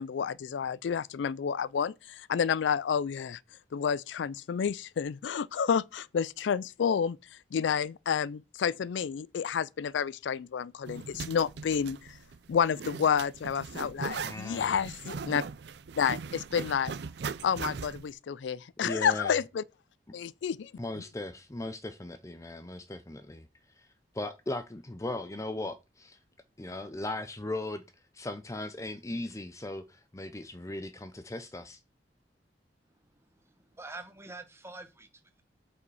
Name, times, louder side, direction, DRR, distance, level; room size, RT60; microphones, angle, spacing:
voice 1, 0.0-3.4 3.7-7.2 7.5-12.2 12.5-15.4 16.0-16.9 17.4-19.6 20.1-20.7, left 7 dB, 85° left, 0.4 m, -30 dB
Zipper (clothing), 10.8-18.1, right 5 dB, 65° right, 0.4 m, -40 dB
voice 2, 14.2-14.8 18.8-19.3 20.8-23.5 23.8-23.9 24.1-26.2 26.6-27.8 28.1-31.8, left 2 dB, 15° left, 0.6 m, -38 dB
voice 3, 32.9-35.4, right 2 dB, 15° right, 1.3 m, -47 dB
8.1 x 5.0 x 4.8 m
head